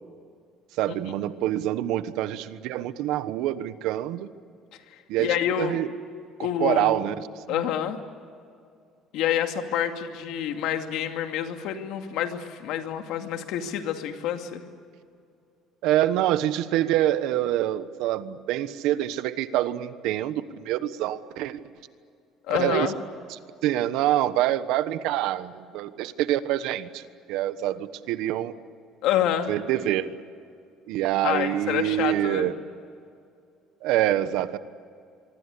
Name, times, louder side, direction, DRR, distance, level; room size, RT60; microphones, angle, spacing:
voice 1, 0.8-4.3 5.1-5.9 6.6-7.6 15.8-21.6 22.5-22.9 23.3-28.5 29.5-30.1 30.9-32.5 33.8-34.6, right 13 dB, 80° right, 13 dB, 1.2 m, -26 dB
voice 2, 4.9-5.8 6.4-7.1 7.5-8.0 9.1-14.6 22.5-22.9 29.0-29.5 31.2-32.5, left 10 dB, 75° left, 5 dB, 2.4 m, -28 dB
24.5 x 24.0 x 8.4 m, 2.3 s
cardioid pair, 140°, 0 cm